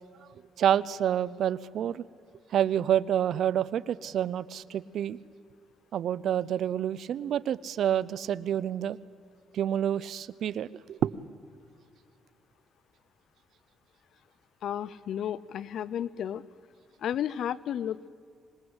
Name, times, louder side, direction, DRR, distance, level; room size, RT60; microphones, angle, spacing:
voice 1, 0.6-2.0 2.5-5.2 5.9-9.0 9.5-11.3, right 10 dB, 70° right, 19 dB, 0.6 m, -28 dB
voice 2, 14.6-16.4 17.0-18.1, left 10 dB, 70° left, 20 dB, 0.6 m, -32 dB
25.5 x 20.5 x 8.0 m, 2.3 s
cardioid pair, 90°, 0 cm